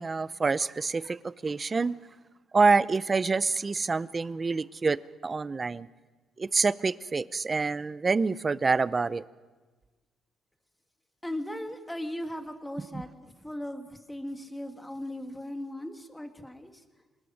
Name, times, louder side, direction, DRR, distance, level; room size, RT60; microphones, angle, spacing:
voice 1, 0.0-1.9 2.5-5.0 5.2-5.9 6.4-9.2, right 4 dB, 30° right, 17 dB, 0.6 m, -26 dB
voice 2, 11.2-16.8, left 1 dB, 5° left, 5 dB, 2.1 m, -38 dB
25.5 x 19.5 x 6.5 m, 1.3 s
cardioid pair, 100°, 0 cm